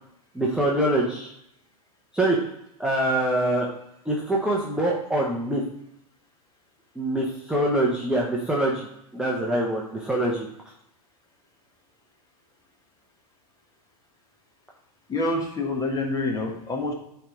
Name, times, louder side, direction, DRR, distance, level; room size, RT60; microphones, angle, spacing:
voice 1, 0.4-1.3 2.1-2.4 2.8-3.7 4.1-5.6 7.0-8.8 9.1-10.5, right 1 dB, 5° right, -4 dB, 1.0 m, -24 dB
voice 2, 15.1-16.9, left 2 dB, 20° left, 2 dB, 1.4 m, -27 dB
8.5 x 3.5 x 3.9 m, 0.77 s
hypercardioid pair, 100°, 20 cm